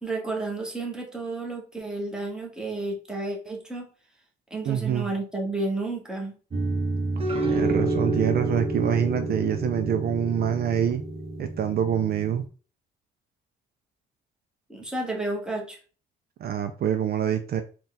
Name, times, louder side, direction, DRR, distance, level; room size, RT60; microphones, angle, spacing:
voice 1, 0.0-3.9 4.5-6.3 14.7-15.8, right 2 dB, 5° right, 1.3 m, -31 dB
voice 2, 4.6-5.1 7.4-11.0 11.4-12.4 16.4-17.6, right 9 dB, 50° right, 0.4 m, -25 dB
sound 1, 6.5-12.5, right 2 dB, 30° right, 1.0 m, -29 dB
4.0 x 2.4 x 3.8 m
cardioid pair, 90°, 20 cm